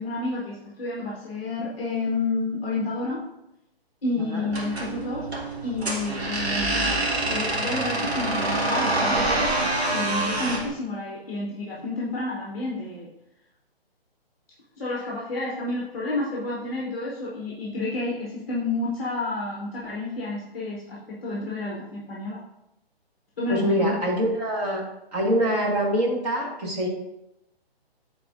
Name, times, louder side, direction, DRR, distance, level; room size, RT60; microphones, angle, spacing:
voice 1, 0.0-3.2 4.0-5.3 5.6-13.1 14.8-22.4 23.4-24.0, left 2 dB, 15° left, -5 dB, 0.8 m, -30 dB
sound 1, 4.5-10.7, right 2 dB, 80° right, 1.8 m, -26 dB
voice 2, 23.5-24.8 25.1-26.9, equal, 40° right, -2 dB, 1.7 m, -24 dB
11.5 x 4.1 x 2.5 m, 0.87 s
hypercardioid pair, 175°, 31 cm